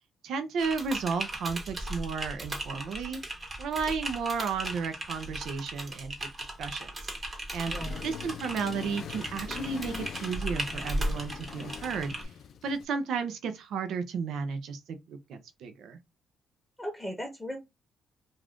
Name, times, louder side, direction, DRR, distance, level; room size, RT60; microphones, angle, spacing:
voice 1, 0.2-3.2 3.6-6.3 6.6-7.1 7.5-7.7 8.0-12.3 12.6-16.0, right 5 dB, 75° right, 0.5 m, -33 dB
Typing, 0.6-12.2, right 1 dB, 30° right, 0.9 m, -37 dB
Accelerating revving vroom, 7.7-12.8, left 8 dB, 60° left, 0.3 m, -43 dB
voice 2, 7.7-8.1 16.8-17.6, equal, ahead, 0.9 m, -37 dB
2.5 x 2.4 x 3.4 m
cardioid pair, 90°, 0 cm